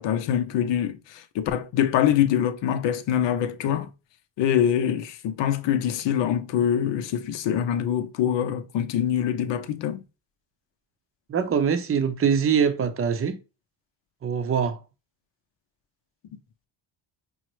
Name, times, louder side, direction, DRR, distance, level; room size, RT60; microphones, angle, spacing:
voice 1, 0.0-3.9 4.4-10.0, left 9 dB, 70° left, 0.7 m, -24 dB
voice 2, 11.3-13.4 14.2-14.8, right 7 dB, 30° right, 0.7 m, -23 dB
5.3 x 2.1 x 3.0 m
cardioid pair, 80°, 46 cm